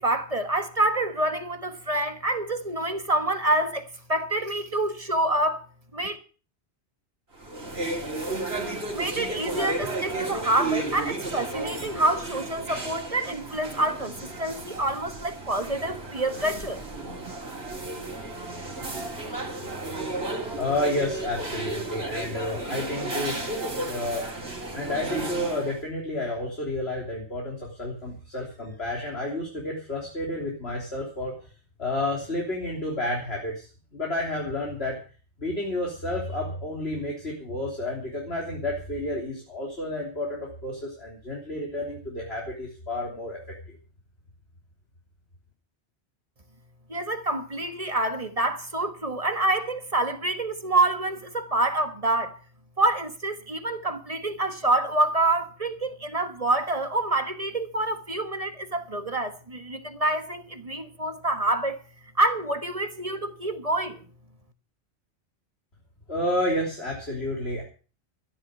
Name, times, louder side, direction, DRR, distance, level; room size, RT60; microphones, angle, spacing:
voice 1, 0.0-5.7 5.9-6.2 8.9-16.8 46.9-52.4 52.8-61.8 62.2-64.1, right 2 dB, 35° right, 1.5 m, -27 dB
sound 1, 7.3-25.8, right 2 dB, 65° right, 3.3 m, -33 dB
voice 2, 20.6-23.4 23.8-24.3 24.7-31.3 31.8-35.0 35.4-43.4 66.1-67.6, left 1 dB, 65° left, 3.7 m, -30 dB
14.0 x 11.0 x 6.6 m
omnidirectional pair, 1.1 m